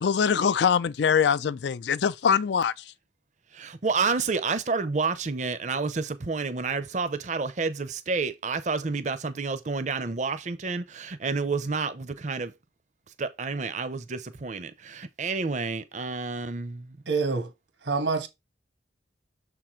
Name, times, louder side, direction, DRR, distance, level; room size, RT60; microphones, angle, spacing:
voice 1, 0.0-2.8, left 7 dB, 75° left, 0.4 m, -23 dB
voice 2, 3.5-12.5 13.2-16.9, right 4 dB, 40° right, 0.6 m, -29 dB
voice 3, 17.1-17.5 17.8-18.3, right 4 dB, 85° right, 1.4 m, -26 dB
6.8 x 3.7 x 4.4 m
head